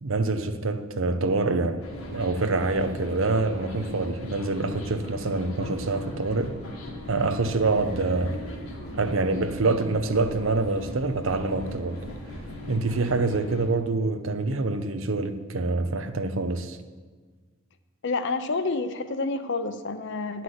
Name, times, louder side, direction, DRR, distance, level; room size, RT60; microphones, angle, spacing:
voice 1, 0.0-1.8 2.1-6.6 7.1-8.4 8.9-12.0 12.7-16.8, right 3 dB, 65° right, 0.7 m, -26 dB
sound 1, 1.8-13.7, left 1 dB, 80° left, 2.1 m, -38 dB
voice 2, 18.0-20.4, left 3 dB, 55° left, 0.7 m, -29 dB
11.0 x 5.9 x 7.8 m
head